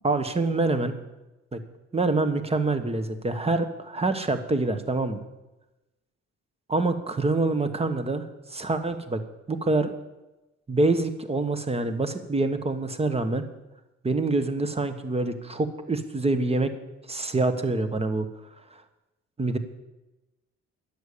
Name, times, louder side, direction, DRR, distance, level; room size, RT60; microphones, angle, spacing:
voice 1, 0.0-0.9 1.5-1.6 1.9-5.2 6.7-8.2 8.5-9.2 9.5-9.9 10.7-13.4 14.0-16.7 17.1-18.3 19.4-19.6, right 2 dB, 20° right, 9 dB, 1.3 m, -26 dB
11.0 x 8.3 x 8.5 m, 1.0 s
cardioid pair, 90°, 30 cm